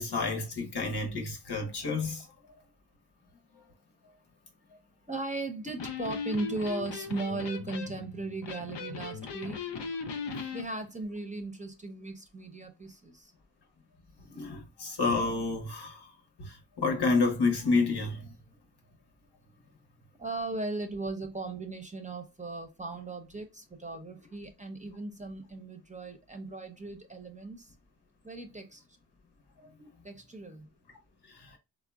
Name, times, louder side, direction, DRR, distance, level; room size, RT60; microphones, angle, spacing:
voice 1, 0.0-2.2 14.3-16.0 16.4-18.3, left 3 dB, 70° left, 0.9 m, -29 dB
voice 2, 5.1-9.6 10.5-13.3 20.2-27.7 28.2-28.8 30.0-30.7, right 2 dB, 20° right, 0.6 m, -37 dB
Electric guitar, 5.7-10.7, left 5 dB, 90° left, 0.5 m, -38 dB
3.6 x 2.1 x 2.2 m
cardioid pair, 45°, 41 cm